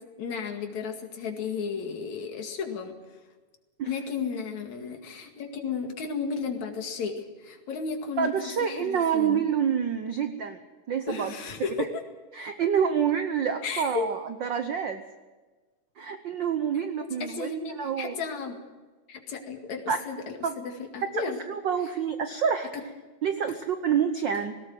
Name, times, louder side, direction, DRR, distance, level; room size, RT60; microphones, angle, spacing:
voice 1, 0.2-2.9 3.9-9.4 11.1-11.9 13.6-14.1 17.2-18.6 19.1-21.4 22.7-22.8, left 5 dB, 70° left, 3 dB, 3.5 m, -34 dB
voice 2, 8.2-11.3 12.3-15.0 16.0-17.5 17.8-18.1 19.9-20.0 20.4-20.6 21.0-22.7 23.2-24.5, right 7 dB, 70° right, 8 dB, 1.0 m, -27 dB
19.0 x 18.0 x 7.7 m, 1.3 s
omnidirectional pair, 3.4 m